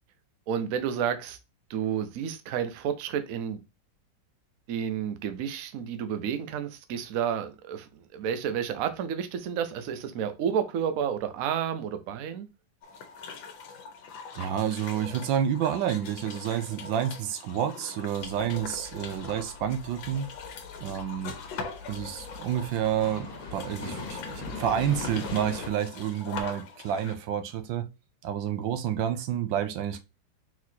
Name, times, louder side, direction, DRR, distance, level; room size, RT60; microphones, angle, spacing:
voice 1, 0.5-1.4 1.7-3.6 4.7-12.5, right 8 dB, 60° right, 0.9 m, -31 dB
sound 1, 12.8-27.2, left 5 dB, 80° left, 1.5 m, -42 dB
voice 2, 14.3-20.3 20.8-21.3 21.9-27.9 28.2-30.0, right 9 dB, 85° right, 1.4 m, -29 dB
sound 2, 18.2-25.7, left 4 dB, 60° left, 1.8 m, -42 dB
4.6 x 4.0 x 2.7 m
omnidirectional pair, 2.1 m